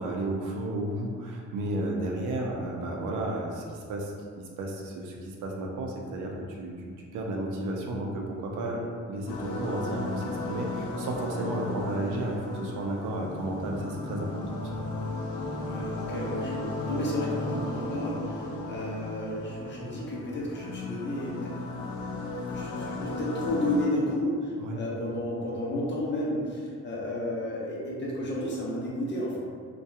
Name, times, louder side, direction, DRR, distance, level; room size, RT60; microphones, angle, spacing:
voice 1, 0.0-6.7 7.1-14.9 24.6-24.8, right 1 dB, 90° right, -1 dB, 0.5 m, -33 dB
sound 1, 9.3-23.9, left 2 dB, 80° left, 0.5 m, -35 dB
voice 2, 15.6-21.6 22.5-29.4, left 1 dB, 40° left, -5 dB, 0.7 m, -32 dB
2.7 x 2.2 x 2.3 m, 2.1 s
cardioid pair, 90°, 30 cm